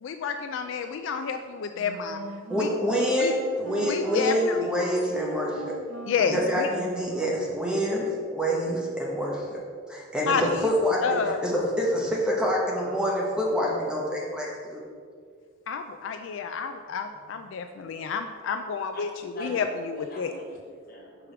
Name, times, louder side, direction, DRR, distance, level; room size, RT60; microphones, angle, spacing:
voice 1, 0.0-2.2 2.6-2.7 3.2-3.3 3.8-4.7 6.1-6.7 10.3-10.7 11.0-11.4 15.7-20.3, left 6 dB, 70° left, 7 dB, 0.3 m, -30 dB
Wind instrument woodwind instrument, 1.7-7.6, right 2 dB, 75° right, 0.8 m, -40 dB
voice 2, 2.5-5.7 6.3-9.6 9.9-14.8, equal, 5° right, -3 dB, 0.9 m, -26 dB
voice 3, 19.3-21.3, right 1 dB, 45° left, -2 dB, 1.4 m, -44 dB
5.0 x 4.7 x 5.8 m, 2.1 s
head